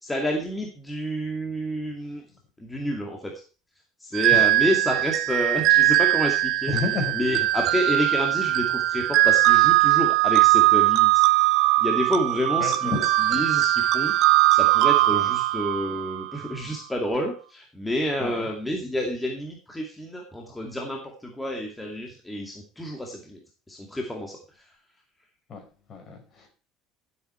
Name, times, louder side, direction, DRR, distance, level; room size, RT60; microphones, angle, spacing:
voice 1, 0.0-2.2 2.6-3.3 4.0-6.7 7.2-11.1 11.8-12.9 13.3-14.1 14.5-23.4 23.7-24.4, equal, 10° left, 2.3 m, -29 dB
sound 1, 4.1-16.5, right 16 dB, 60° right, 1.2 m, -20 dB
voice 2, 6.7-7.5 12.6-13.6 15.1-15.3 18.2-18.5 25.5-26.5, left 3 dB, 40° left, 5.1 m, -32 dB
13.5 x 8.1 x 4.5 m
supercardioid pair, 120°, 0 cm